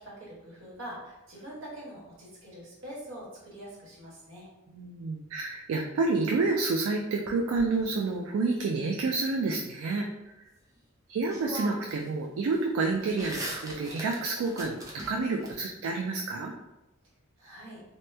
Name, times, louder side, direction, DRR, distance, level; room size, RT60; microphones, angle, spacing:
voice 1, 0.0-4.5 17.4-17.8, right 1 dB, 70° right, -5 dB, 1.2 m, -44 dB
voice 2, 4.7-10.1 11.1-16.5, right 3 dB, 85° right, 1 dB, 0.3 m, -29 dB
sound 1, 7.3-8.5 10.8-10.9 11.3-12.1 12.4-15.5, right 1 dB, 15° right, 0.5 m, -41 dB
2.9 x 2.1 x 3.2 m, 0.97 s
head